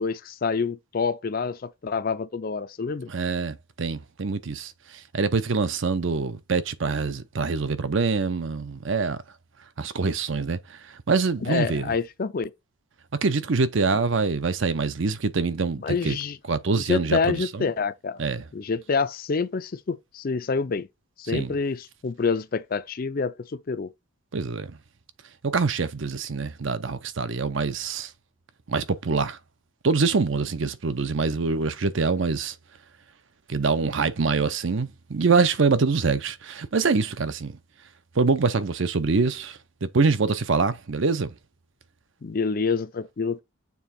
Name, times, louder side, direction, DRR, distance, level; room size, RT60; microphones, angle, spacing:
voice 1, 0.0-3.1 11.4-12.5 15.8-16.4 16.7-18.2 18.5-20.9 21.2-23.9 42.2-43.4, left 5 dB, 40° left, 0.4 m, -27 dB
voice 2, 3.1-9.2 9.8-12.0 13.2-16.2 16.5-17.7 18.2-18.4 21.3-21.6 24.3-24.8 25.4-28.1 28.7-29.4 29.8-32.6 33.5-37.6 38.2-41.3, right 4 dB, 60° right, 0.6 m, -25 dB
7.0 x 3.4 x 4.2 m
head